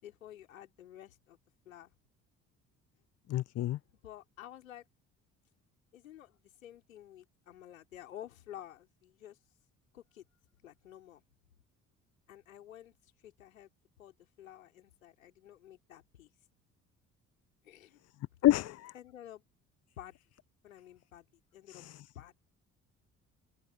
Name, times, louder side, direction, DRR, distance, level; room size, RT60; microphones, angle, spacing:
voice 1, 0.0-1.4 1.6-1.9 4.0-4.9 5.9-9.4 9.9-10.2 10.6-11.2 12.3-13.7 14.0-16.3 17.6-18.0 18.5-19.4 20.0-20.2 20.6-21.3 21.5-21.9 22.1-22.3, left 12 dB, 80° left, 4.1 m, -51 dB
voice 2, 3.3-3.8 18.4-18.9 21.7-22.0, left 14 dB, 40° left, 0.6 m, -28 dB
open air
figure-of-eight pair, 50°, 40 cm